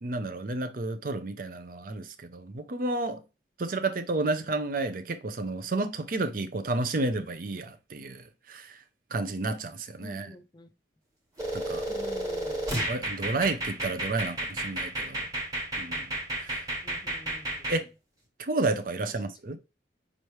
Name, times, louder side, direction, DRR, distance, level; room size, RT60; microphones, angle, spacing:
voice 1, 0.0-3.2 3.6-8.8 9.1-10.3 11.5-11.8 12.9-15.2 15.8-16.1 16.4-16.6 17.7-17.8 18.4-19.6, right 2 dB, 50° right, 0.5 m, -31 dB
voice 2, 10.0-10.7 11.9-12.6 16.8-17.7, left 1 dB, 25° left, 0.4 m, -47 dB
sound 1, 11.4-17.8, right 1 dB, 20° right, 1.2 m, -32 dB
5.3 x 3.1 x 3.1 m
head